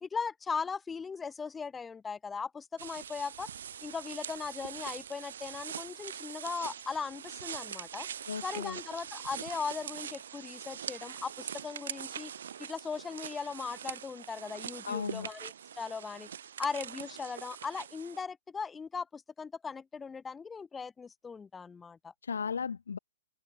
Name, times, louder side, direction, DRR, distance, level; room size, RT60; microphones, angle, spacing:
voice 1, 0.0-3.5 3.8-8.1 8.4-12.3 12.6-16.3 16.6-22.1, left 5 dB, 10° left, 0.8 m, -38 dB
sound 1, 2.8-18.2, right 8 dB, 55° right, 0.4 m, -43 dB
voice 2, 8.3-8.8 14.8-15.3 22.2-23.0, left 6 dB, 60° left, 0.3 m, -35 dB
figure-of-eight pair, 115°, 0 cm